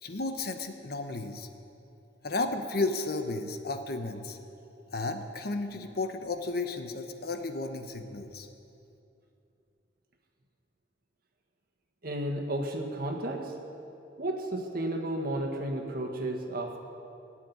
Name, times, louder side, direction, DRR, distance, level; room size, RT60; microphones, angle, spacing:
voice 1, 0.0-1.5 2.2-4.4 4.9-8.5, left 3 dB, 60° left, 7 dB, 1.0 m, -33 dB
voice 2, 12.0-13.5 14.2-16.8, right 1 dB, 55° right, 1 dB, 1.7 m, -32 dB
17.5 x 7.6 x 9.6 m, 2.7 s
head